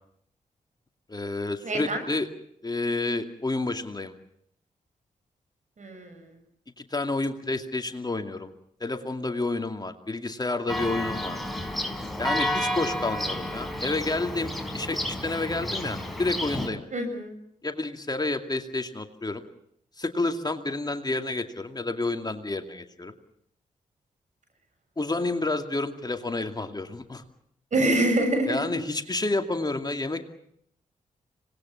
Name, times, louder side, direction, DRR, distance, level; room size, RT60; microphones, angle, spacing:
voice 1, 1.1-2.3 2.6-4.1 6.9-8.5 8.8-11.4 12.2-16.8 17.6-19.4 20.0-23.1 25.0-27.2 28.5-30.3, left 2 dB, 30° left, 6 dB, 2.5 m, -29 dB
voice 2, 1.6-2.0 5.8-6.2 16.9-17.3 27.7-28.8, right 1 dB, 60° right, 6 dB, 7.2 m, -25 dB
Church bell, 10.7-16.7, left 1 dB, ahead, 5.1 m, -31 dB
25.5 x 20.0 x 7.2 m, 0.70 s
supercardioid pair, 50°, 14 cm